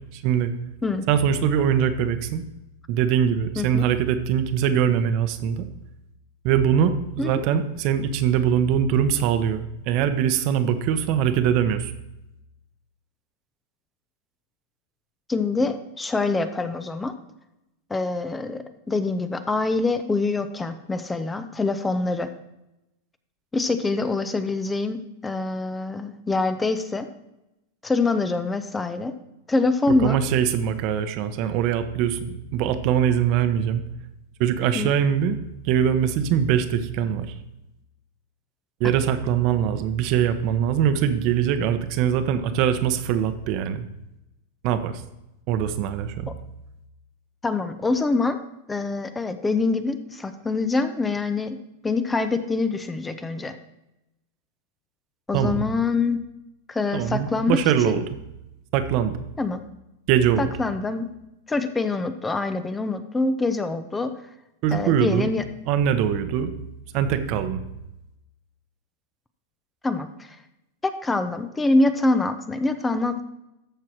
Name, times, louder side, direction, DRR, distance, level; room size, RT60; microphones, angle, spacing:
voice 1, 0.1-0.5 1.1-2.4 2.9-5.7 6.4-11.9 30.0-33.8 34.4-35.4 35.6-37.3 38.8-43.9 44.6-45.0 45.5-46.3 55.3-55.6 56.9-58.0 58.7-59.2 60.1-60.5 64.6-65.3 65.7-66.5 66.9-67.6, right 9 dB, 50° right, 10 dB, 0.9 m, -22 dB
voice 2, 3.6-3.9 7.2-7.5 15.3-17.1 17.9-22.3 23.5-27.1 27.8-29.1 29.5-30.2 34.7-34.9 47.4-48.4 48.7-51.6 51.8-53.6 55.3-56.2 56.7-58.0 59.4-59.6 60.4-61.1 61.5-64.1 64.7-65.4 69.8-70.4 70.8-73.2, left 3 dB, 10° left, 10 dB, 0.7 m, -25 dB
13.5 x 4.6 x 4.6 m, 0.91 s
hypercardioid pair, 125°, 0 cm